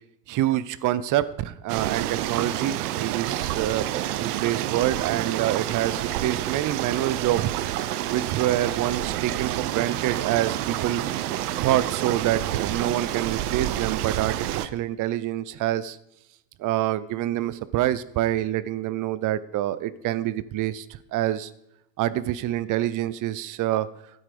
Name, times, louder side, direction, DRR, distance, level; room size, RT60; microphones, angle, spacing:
voice 1, 0.3-3.9 4.2-7.6 8.1-11.0 11.6-16.0 16.6-21.5 22.0-23.9, right 13 dB, 45° right, 17 dB, 0.7 m, -26 dB
sound 1, 1.7-14.7, right 13 dB, 85° right, 0.8 m, -28 dB
12.5 x 8.8 x 5.0 m, 0.82 s
supercardioid pair, 100°, 44 cm